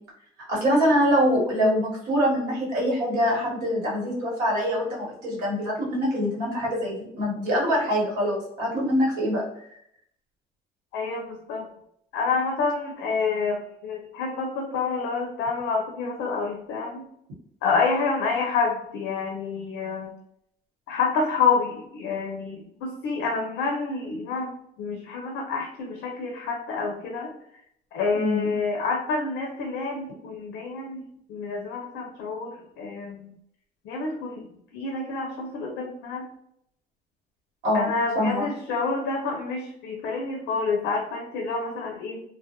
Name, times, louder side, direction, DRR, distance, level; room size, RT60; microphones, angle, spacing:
voice 1, 0.5-9.4 28.1-28.5 37.6-38.5, equal, 80° right, -4 dB, 1.1 m, -24 dB
voice 2, 10.9-11.7 12.1-17.0 17.6-20.1 20.9-24.5 24.8-27.3 27.9-31.0 31.3-33.3 33.8-34.5 34.7-36.3 37.7-42.2, left 4 dB, 90° left, 1 dB, 0.4 m, -28 dB
2.2 x 2.0 x 2.8 m, 0.72 s
cardioid pair, 110°, 17 cm